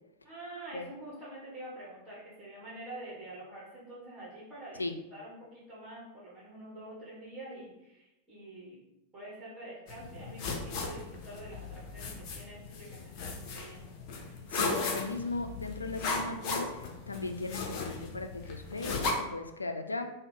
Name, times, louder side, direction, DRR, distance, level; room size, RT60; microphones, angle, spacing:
voice 1, 0.2-4.8 5.1-8.8 9.1-13.9, right 1 dB, 15° right, -7 dB, 1.4 m, -46 dB
sound 1, 9.9-19.1, left 4 dB, 40° left, 0.6 m, -37 dB
voice 2, 14.5-20.1, left 3 dB, 80° left, 6 dB, 0.3 m, -37 dB
3.7 x 2.0 x 3.6 m, 0.93 s
figure-of-eight pair, 90°, 0 cm